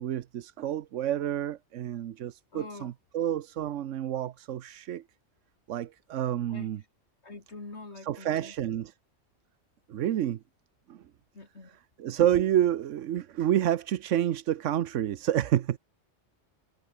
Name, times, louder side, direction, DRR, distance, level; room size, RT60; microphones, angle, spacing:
voice 1, 0.0-5.0 5.7-6.8 8.0-8.9 9.9-10.4 10.9-11.0 12.0-15.8, right 11 dB, 80° right, 1.1 m, -29 dB
voice 2, 2.5-2.9 6.5-6.7 7.2-8.5 11.3-11.8, left 3 dB, 65° left, 3.6 m, -45 dB
omnidirectional pair, 1.2 m